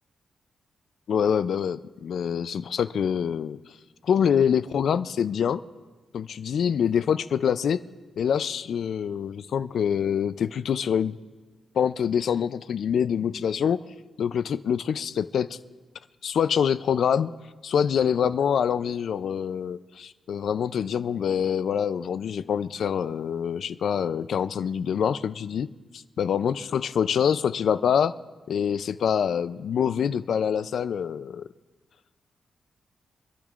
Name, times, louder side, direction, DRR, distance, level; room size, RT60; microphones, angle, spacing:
voice 1, 1.1-3.6 4.0-5.6 6.1-7.8 8.2-11.2 11.7-13.9 14.2-15.6 16.2-17.3 17.6-25.7 25.9-28.2 28.5-31.5, left 8 dB, 65° left, 13 dB, 0.4 m, -25 dB
26.5 x 12.0 x 2.4 m, 1.3 s
wide cardioid pair, 150°, 0 cm